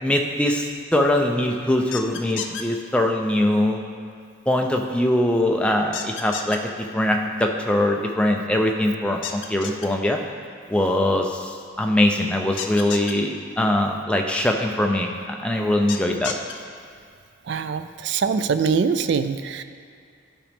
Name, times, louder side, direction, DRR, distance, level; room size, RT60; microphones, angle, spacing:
voice 1, 0.0-3.8 4.5-6.6 6.9-10.2 10.7-15.1 15.4-16.3, left 1 dB, 5° left, 2 dB, 0.4 m, -22 dB
sound 1, 1.9-2.6 5.9-6.6 9.2-9.9 12.6-13.1 15.9-16.5, left 8 dB, 65° left, 0.5 m, -31 dB
voice 2, 17.5-19.6, right 5 dB, 55° right, 10 dB, 0.3 m, -23 dB
11.5 x 5.1 x 3.5 m, 2.2 s
head